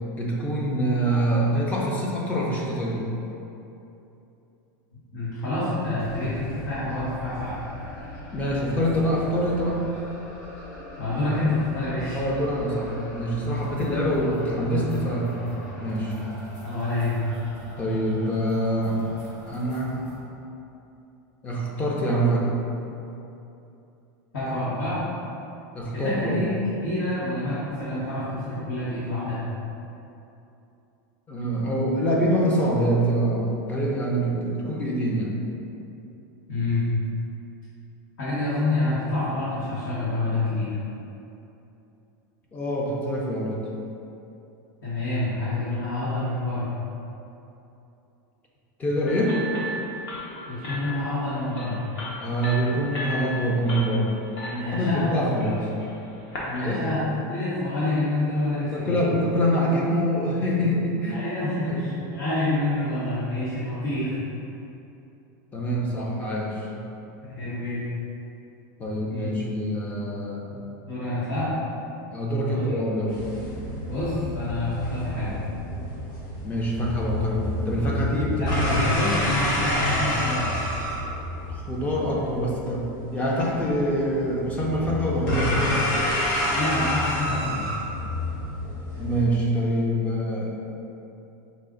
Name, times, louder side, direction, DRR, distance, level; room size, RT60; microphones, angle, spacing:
voice 1, 0.2-3.0 8.3-9.9 12.1-15.3 15.8-16.2 17.8-19.0 19.5-20.0 21.4-22.5 25.7-26.4 31.3-35.3 42.5-43.6 48.8-49.4 52.2-54.1 54.7-55.7 56.6-56.8 58.5-61.2 61.7-61.8 65.5-66.7 68.8-70.6 72.1-73.2 76.4-78.8 81.5-82.9 83.1-85.6 89.0-90.5, equal, 15° left, -3 dB, 0.5 m, -25 dB
voice 2, 5.1-7.5 11.0-12.2 16.6-17.2 24.3-25.0 25.9-26.5 26.8-29.4 36.5-36.8 38.2-40.7 44.8-46.7 50.5-51.8 54.4-55.1 55.4-55.5 56.5-57.0 57.3-59.0 61.1-64.2 67.2-67.8 69.1-69.3 70.9-71.5 72.4-72.7 73.9-75.4 78.4-80.5 86.4-87.6, left 2 dB, 90° left, -12 dB, 1.4 m, -27 dB
sound 1, 6.0-20.2, equal, 30° left, 1.3 m, -40 dB
sound 2, 49.1-56.6, equal, 50° left, 1.0 m, -36 dB
sound 3, 73.1-89.2, left 1 dB, 65° left, 1.4 m, -28 dB
4.9 x 2.4 x 3.7 m, 2.8 s
supercardioid pair, 170°, 11 cm